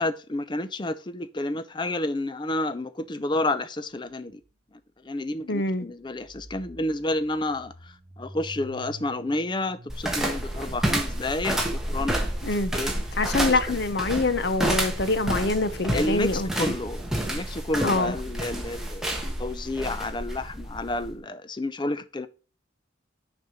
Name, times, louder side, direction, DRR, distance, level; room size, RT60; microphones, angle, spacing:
voice 1, 0.0-4.4 5.0-12.2 12.7-12.9 13.7-13.8 15.9-22.3, left 2 dB, 25° left, 0.5 m, -30 dB
sound 1, 4.1-4.2 4.4-4.5 6.0-18.0, equal, 40° right, 2.9 m, -49 dB
voice 2, 5.4-5.9 12.4-12.7 13.2-16.5 17.8-18.2, left 2 dB, 55° left, 0.8 m, -25 dB
sound 2, 9.9-21.1, right 1 dB, ahead, 1.2 m, -30 dB
6.5 x 5.4 x 4.2 m
head